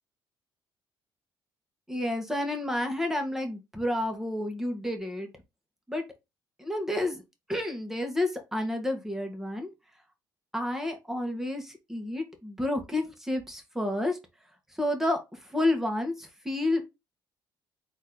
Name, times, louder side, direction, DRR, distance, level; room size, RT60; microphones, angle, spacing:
voice 1, 1.9-5.3 5.9-6.0 6.6-7.2 7.5-9.7 10.5-14.2 14.8-16.8, left 1 dB, 5° right, 1.7 m, -30 dB
4.1 x 3.2 x 4.0 m
cardioid pair, 85°, 9 cm